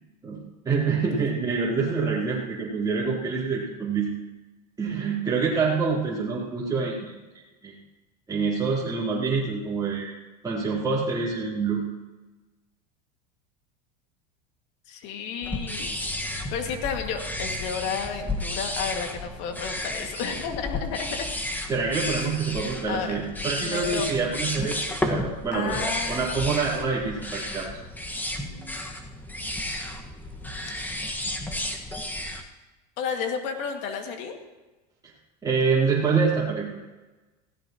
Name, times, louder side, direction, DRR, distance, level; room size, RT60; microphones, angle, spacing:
voice 1, 0.2-4.1 4.8-7.1 7.6-7.7 8.3-10.1 10.4-11.8 21.7-24.8 25.0-27.7 35.4-36.7, right 5 dB, 15° right, -7 dB, 3.8 m, -26 dB
voice 2, 14.9-15.9 16.5-21.3 22.9-23.2 23.6-24.1 25.5-26.6 30.7-30.9 33.0-34.3, left 6 dB, 60° left, 3 dB, 2.2 m, -32 dB
sound 1, 15.4-32.4, left 1 dB, 10° left, 1.7 m, -32 dB
17.5 x 16.5 x 3.1 m, 1.2 s
hypercardioid pair, 100°, 21 cm